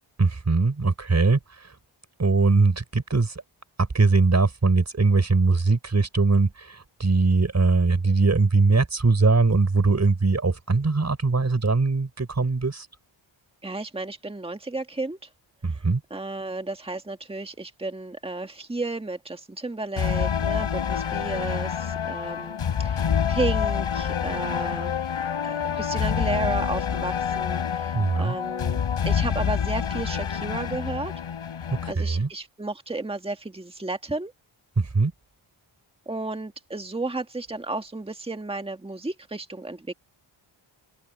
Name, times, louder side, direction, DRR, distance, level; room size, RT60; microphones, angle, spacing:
voice 1, 0.2-1.7 2.2-3.4 3.8-12.9 15.6-16.0 27.9-28.4 31.7-32.3 34.8-35.1, right 3 dB, 35° right, 5.6 m, -21 dB
voice 2, 13.6-15.3 16.1-24.9 25.4-28.8 29.0-31.1 31.9-34.3 36.1-39.9, right 2 dB, 10° right, 1.8 m, -33 dB
sound 1, 20.0-31.9, left 8 dB, 85° left, 5.4 m, -27 dB
open air
wide cardioid pair, 105°, 48 cm